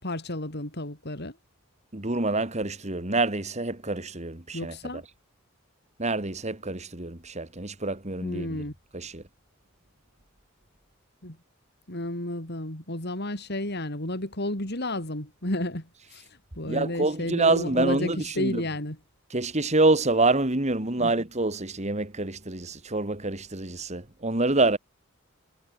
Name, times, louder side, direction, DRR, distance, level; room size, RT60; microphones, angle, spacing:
voice 1, 0.0-1.3 4.5-5.0 8.2-8.7 11.2-11.4 11.9-16.2 16.6-19.0 21.0-21.1, left 1 dB, 50° left, 5.1 m, -32 dB
voice 2, 1.9-4.8 6.0-8.6 8.9-9.2 16.6-18.6 19.3-24.8, right 2 dB, 35° right, 2.4 m, -26 dB
head